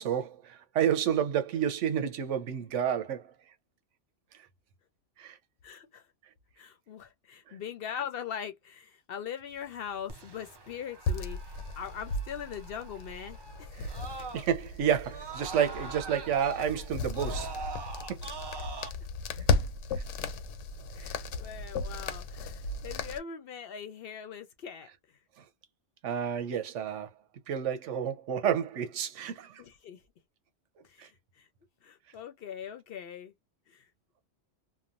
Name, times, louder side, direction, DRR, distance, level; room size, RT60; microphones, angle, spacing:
voice 1, 0.0-3.3 5.2-5.4 7.5-7.6 13.8-13.9 14.3-17.7 18.1-18.2 26.0-27.1 27.5-29.6 31.0-31.1, right 8 dB, 80° right, 1.0 m, -30 dB
voice 2, 5.6-6.1 6.6-13.7 18.6-18.7 20.9-24.9 29.6-30.0 30.8-31.5 31.8-33.3 33.7-33.9, left 8 dB, 60° left, 0.7 m, -41 dB
Screaming, 10.1-14.7 15.0-18.9, right 4 dB, 35° right, 0.4 m, -43 dB
sound 1, 11.1-23.2, left 3 dB, 90° left, 0.9 m, -35 dB
3.0 x 2.1 x 2.5 m
omnidirectional pair, 1.2 m